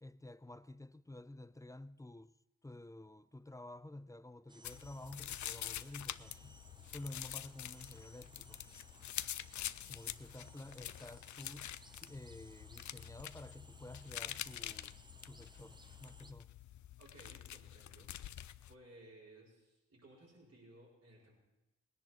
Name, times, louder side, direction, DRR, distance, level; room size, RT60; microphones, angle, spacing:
voice 1, 0.0-2.3 2.6-6.6 6.9-8.6 9.9-11.7 12.0-15.0 15.3-16.5, left 1 dB, 10° left, 0.5 m, -51 dB
sound 1, 4.5-16.3, right 2 dB, 15° right, 0.8 m, -61 dB
sound 2, 4.6-18.7, left 12 dB, 65° left, 0.5 m, -46 dB
voice 2, 17.0-18.1 18.7-21.4, right 1 dB, 50° right, 4.9 m, -59 dB
19.0 x 10.5 x 4.4 m
supercardioid pair, 40°, 31 cm